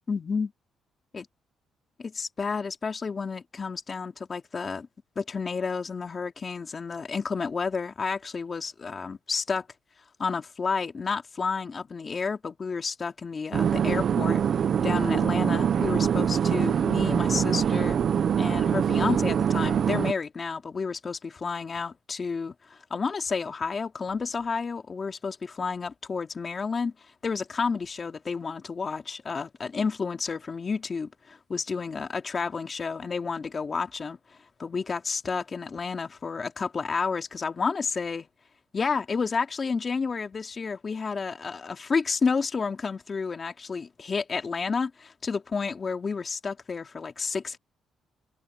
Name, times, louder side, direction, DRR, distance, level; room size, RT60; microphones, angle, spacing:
voice 1, 0.1-0.5 1.1-1.3 2.0-4.9 5.2-9.7 10.2-14.4 14.8-18.0 18.4-26.9 27.2-34.2 34.6-38.3 38.7-47.6, left 5 dB, 35° left, 2.5 m, -30 dB
sound 1, 13.5-20.1, right 8 dB, 55° right, 0.6 m, -24 dB
cardioid pair, 90°, 0 cm